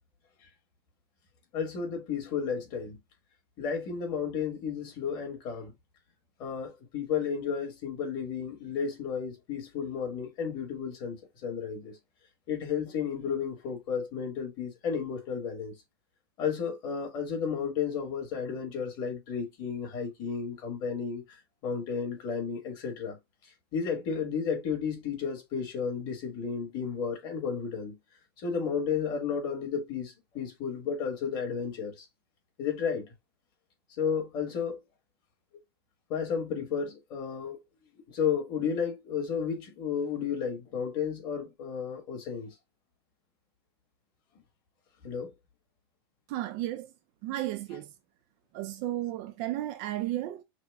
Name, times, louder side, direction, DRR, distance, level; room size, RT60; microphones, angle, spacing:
voice 1, 1.5-3.0 3.6-5.7 6.4-12.0 12.5-15.7 16.4-21.4 21.6-23.2 23.7-28.0 28.4-32.0 32.6-33.1 34.0-34.8 36.1-37.6 38.1-42.5 45.0-45.3, left 6 dB, 30° left, 1.4 m, -32 dB
voice 2, 46.3-46.9 47.2-47.9 48.5-50.4, right 14 dB, 35° right, 0.4 m, -33 dB
5.8 x 2.1 x 3.4 m
supercardioid pair, 170°, 13 cm